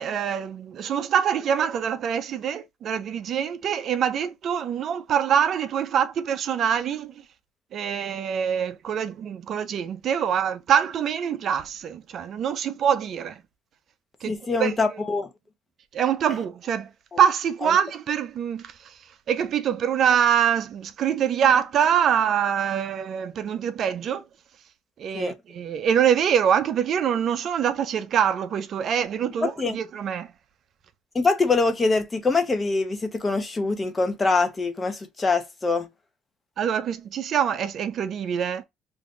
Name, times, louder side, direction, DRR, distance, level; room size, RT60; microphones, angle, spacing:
voice 1, 0.0-7.1 7.7-13.4 14.2-14.3 14.6-14.8 15.9-16.9 17.2-18.9 19.3-24.2 25.0-30.3 36.6-38.6, right 8 dB, 55° right, 0.5 m, -24 dB
voice 2, 14.3-15.3 17.1-17.2 17.6-17.7 25.1-25.3 29.4-29.8 31.1-35.9, left 3 dB, 25° left, 0.8 m, -24 dB
2.6 x 2.4 x 3.7 m
supercardioid pair, 95°, 0 cm